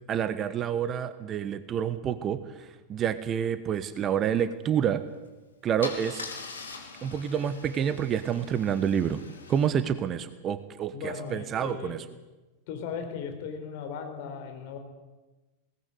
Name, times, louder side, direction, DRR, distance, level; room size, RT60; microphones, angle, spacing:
voice 1, 0.1-5.0 5.6-6.2 7.0-9.2 9.5-12.0, right 8 dB, 30° right, 13 dB, 1.2 m, -28 dB
Car / Engine starting / Idling, 5.1-5.3 5.8-9.7, left 4 dB, 70° left, 3.9 m, -42 dB
voice 2, 10.9-12.0 12.7-14.8, left 6 dB, 50° left, 5 dB, 4.3 m, -37 dB
21.5 x 18.5 x 8.2 m, 1.1 s
figure-of-eight pair, 90°, 0 cm